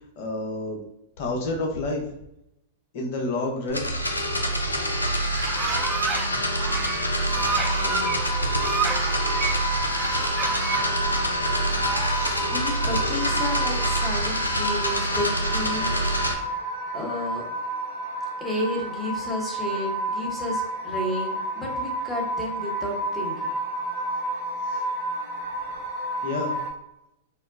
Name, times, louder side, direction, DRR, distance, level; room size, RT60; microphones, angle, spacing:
voice 1, 0.2-0.8 1.2-2.0 2.9-3.9 12.1-12.4 24.7-24.8 26.2-26.6, left 2 dB, 50° left, 1 dB, 0.9 m, -29 dB
sound 1, 3.7-16.3, equal, 90° left, 0.5 m, -26 dB
sound 2, 5.2-6.3 6.6-9.5 9.9-10.9 11.4-12.6, right 6 dB, 25° right, 0.3 m, -31 dB
sound 3, 7.3-26.7, right 1 dB, 55° right, 1.2 m, -31 dB
voice 2, 7.4-8.2 12.3-16.0 16.9-17.5 18.4-23.5, left 1 dB, 5° left, -2 dB, 1.0 m, -32 dB
4.2 x 2.1 x 2.5 m, 0.82 s
figure-of-eight pair, 100°, 0 cm